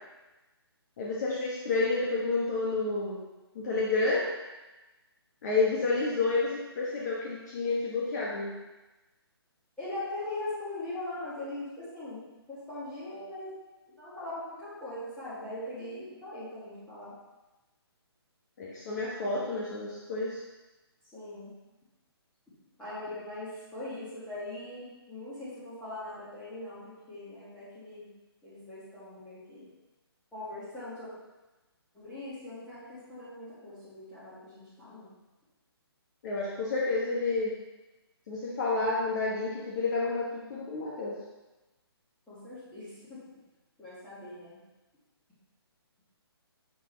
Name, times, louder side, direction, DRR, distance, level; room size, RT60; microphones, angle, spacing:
voice 1, 1.0-3.2 3.5-4.2 5.4-8.5 18.6-20.4 36.2-37.5 38.3-41.2, left 3 dB, 40° left, -5 dB, 1.2 m, -30 dB
voice 2, 9.8-12.2 12.5-13.5 14.0-17.1 21.1-21.5 22.8-28.1 28.4-29.7 30.3-31.1 31.9-35.1 42.3-43.2 43.8-44.6, left 2 dB, 5° left, -14 dB, 2.0 m, -41 dB
6.2 x 5.5 x 3.2 m, 1.1 s
figure-of-eight pair, 140°, 14 cm